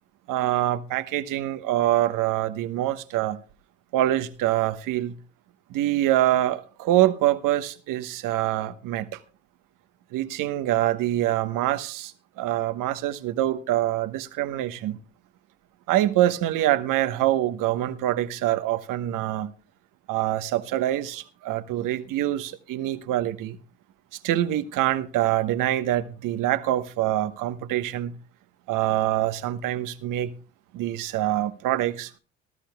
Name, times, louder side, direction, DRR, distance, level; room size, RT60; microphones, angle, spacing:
voice 1, 0.3-3.4 3.9-5.2 5.7-9.2 10.1-15.0 15.9-19.5 20.1-23.6 24.1-28.2 28.7-30.3 30.7-32.1, right 13 dB, 60° right, 1.1 m, -25 dB
18.5 x 13.5 x 2.3 m
hypercardioid pair, 60°, 35 cm